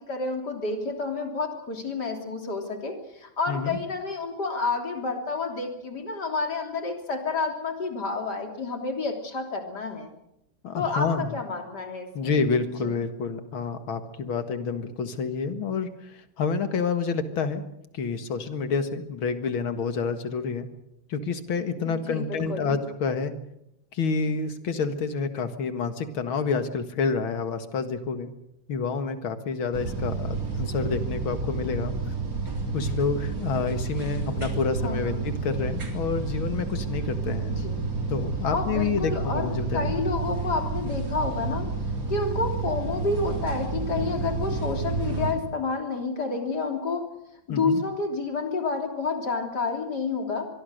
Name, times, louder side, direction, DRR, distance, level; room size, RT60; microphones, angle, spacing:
voice 1, 0.0-10.1 10.8-12.4 12.8-12.9 21.9-22.8 34.8-35.2 37.5-37.8 38.5-47.0 47.5-50.5, left 4 dB, 55° left, 4 dB, 3.9 m, -29 dB
voice 2, 3.5-3.8 10.6-11.3 12.1-17.6 17.9-20.7 21.1-23.3 23.9-28.3 28.7-31.9 32.7-37.5 38.1-40.0 47.5-47.8, left 5 dB, 85° left, 9 dB, 2.6 m, -28 dB
sound 1, 29.7-45.3, right 4 dB, 45° right, 4.0 m, -30 dB
24.5 x 22.5 x 6.6 m, 0.83 s
omnidirectional pair, 2.2 m